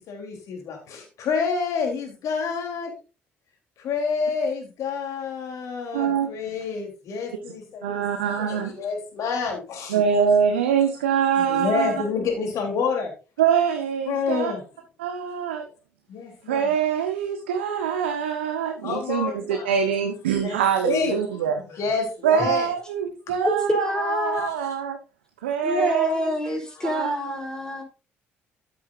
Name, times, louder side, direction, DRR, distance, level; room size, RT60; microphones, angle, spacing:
voice 1, 0.1-2.9 3.8-8.0 8.4-10.0 11.4-13.1 14.1-14.6 16.1-16.7 18.8-19.7 20.4-20.6 20.8-21.2 21.6-22.7 26.8-26.9, left 5 dB, 60° left, 3.3 m, -28 dB
voice 2, 5.9-6.3 7.8-8.7 9.9-11.9 13.4-14.5 15.0-15.7 16.5-21.6 22.2-25.0 25.4-26.3 26.8-27.4, right 7 dB, 80° right, 1.0 m, -24 dB
voice 3, 23.4-24.5 25.6-27.8, equal, 10° left, 3.7 m, -26 dB
13.0 x 7.9 x 2.6 m
figure-of-eight pair, 45°, 6 cm